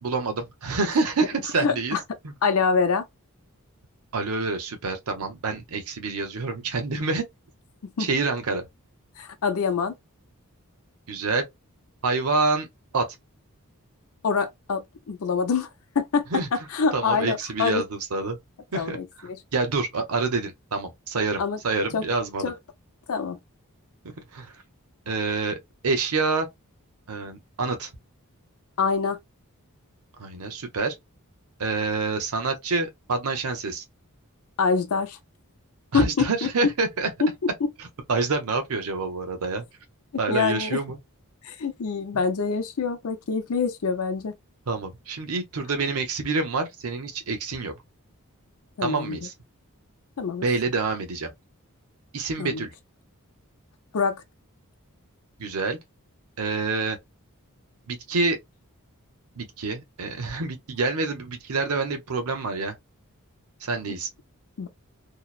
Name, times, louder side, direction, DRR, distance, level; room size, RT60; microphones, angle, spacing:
voice 1, 0.0-2.0 2.2-2.3 4.1-7.2 8.0-8.7 11.1-11.4 12.0-12.7 12.9-13.1 16.3-16.5 16.9-18.4 18.7-22.5 24.3-24.5 25.1-25.6 25.8-26.5 27.1-27.9 30.2-30.9 31.6-33.8 35.9-37.1 37.8-39.6 40.2-41.0 44.7-47.7 48.8-49.3 50.4-51.3 52.1-52.7 55.4-55.8 56.4-57.0 57.9-58.4 59.4-62.7 63.6-64.1, right 3 dB, 80° right, 0.7 m, -27 dB
voice 2, 1.6-2.0 2.4-3.0 8.0-8.1 9.2-9.9 14.2-15.7 16.0-17.8 18.7-19.0 21.4-21.6 21.9-22.0 22.4-22.5 23.1-23.4 28.8-29.2 34.6-35.2 35.9-36.5 37.2-37.7 40.3-40.8 41.4-44.3 48.8-49.2 50.2-50.5 52.4-52.6 53.9-54.2 64.6-64.7, left 5 dB, 75° left, 0.6 m, -25 dB
2.8 x 2.0 x 2.2 m
head